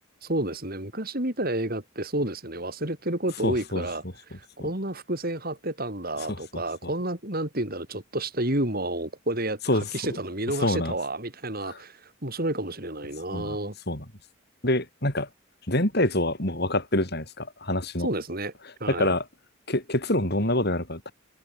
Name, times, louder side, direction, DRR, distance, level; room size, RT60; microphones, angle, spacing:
voice 1, 0.2-13.7 18.0-18.5 18.8-19.1, right 1 dB, 45° right, 5.1 m, -30 dB
voice 2, 3.4-3.9 4.6-4.7 6.3-6.9 9.7-10.2 10.6-10.9 11.6-11.8 13.3-13.6 13.9-14.0 14.6-15.3 15.7-18.1 18.9-19.2 19.7-21.1, left 1 dB, 50° left, 7.1 m, -26 dB
head